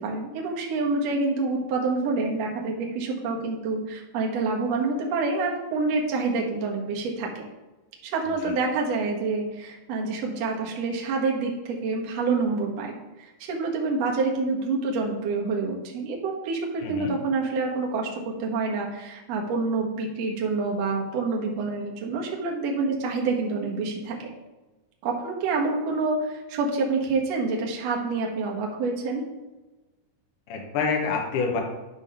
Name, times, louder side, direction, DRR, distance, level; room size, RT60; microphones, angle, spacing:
voice 1, 0.0-7.4 8.0-24.3 25.0-29.2, right 3 dB, 60° right, 0 dB, 1.9 m, -27 dB
voice 2, 16.8-17.1 30.5-31.6, left 5 dB, 65° left, 1 dB, 2.5 m, -27 dB
9.6 x 3.5 x 5.6 m, 1.1 s
omnidirectional pair, 4.2 m